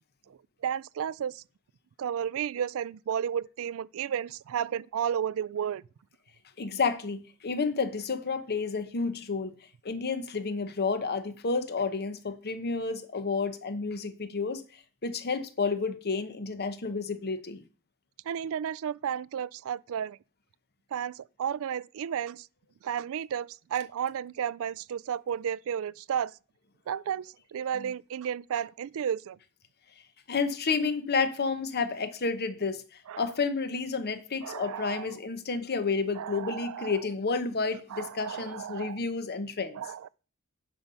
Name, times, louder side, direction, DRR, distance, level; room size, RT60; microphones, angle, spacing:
voice 1, 0.3-1.4 2.0-5.8 18.2-20.2 20.9-22.5 22.8-26.3 26.9-29.4 33.1-33.3 34.4-35.1 36.2-37.0 37.9-39.0 39.7-40.1, right 8 dB, 65° right, 0.3 m, -33 dB
voice 2, 6.6-9.5 9.8-17.6 27.8-27.9 30.3-39.8, left 4 dB, 45° left, 0.9 m, -31 dB
10.0 x 5.4 x 5.6 m
head